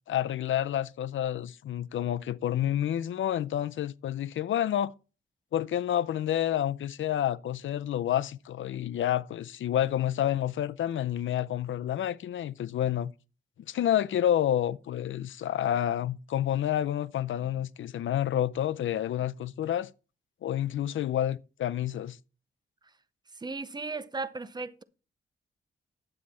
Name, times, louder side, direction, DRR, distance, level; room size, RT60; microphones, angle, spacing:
voice 1, 0.1-4.9 5.5-13.1 13.7-19.9 20.4-22.2, left 11 dB, 75° left, 0.5 m, -29 dB
voice 2, 23.3-24.8, right 3 dB, 20° right, 0.6 m, -36 dB
9.8 x 7.6 x 4.1 m
wide cardioid pair, 145°, 21 cm